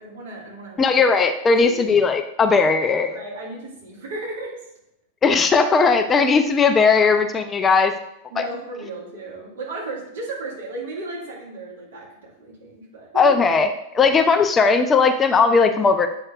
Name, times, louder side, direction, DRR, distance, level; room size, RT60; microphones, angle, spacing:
voice 1, 0.0-1.0 1.5-1.8 3.1-4.6 5.2-5.3 8.3-13.3 14.0-14.2, right 2 dB, 60° right, -3 dB, 1.9 m, -35 dB
voice 2, 0.8-3.2 5.2-7.9 13.2-13.7 13.9-16.1, left 4 dB, 20° left, 7 dB, 0.4 m, -17 dB
7.9 x 5.3 x 2.3 m, 0.81 s
figure-of-eight pair, 90°, 0 cm